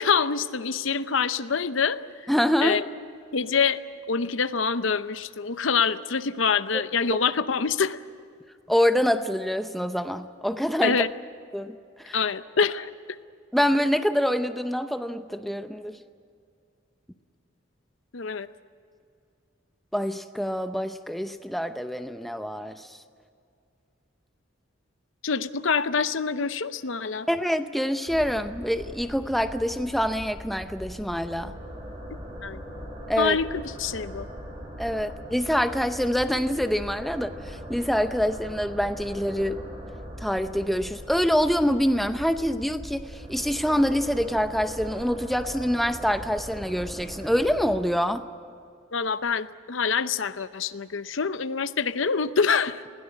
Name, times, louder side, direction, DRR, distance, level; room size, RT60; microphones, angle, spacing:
voice 1, 0.0-2.0 2.6-2.8 3.3-3.8 4.1-8.0 10.8-11.1 12.1-13.2 18.1-18.5 25.2-27.3 32.4-32.6 33.2-34.3 48.9-52.9, left 5 dB, 75° left, 13 dB, 0.7 m, -25 dB
voice 2, 2.3-2.8 6.7-6.8 8.7-11.0 11.5-11.8 12.0-12.2 13.5-16.0 19.9-22.9 27.3-31.5 33.1-33.4 34.8-39.6 40.2-48.2, equal, ahead, 8 dB, 0.7 m, -25 dB
sound 1, 28.1-47.8, equal, 20° right, 6.2 m, -40 dB
21.0 x 17.0 x 9.6 m, 2.4 s
head